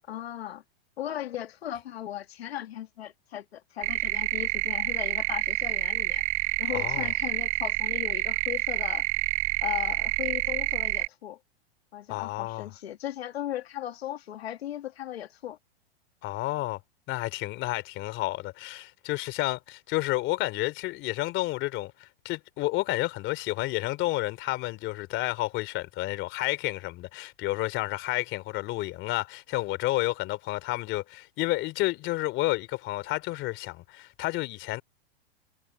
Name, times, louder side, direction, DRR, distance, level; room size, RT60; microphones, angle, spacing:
voice 1, 0.1-0.6 1.0-6.2 6.6-9.0 9.6-11.4 11.9-15.6, left 12 dB, 80° left, 2.2 m, -37 dB
sound 1, 3.8-11.1, right 20 dB, 40° right, 1.9 m, -28 dB
voice 2, 6.7-7.1 12.1-12.7 16.2-16.8 17.1-34.8, left 18 dB, 40° left, 3.0 m, -30 dB
hypercardioid pair, 125°, 31 cm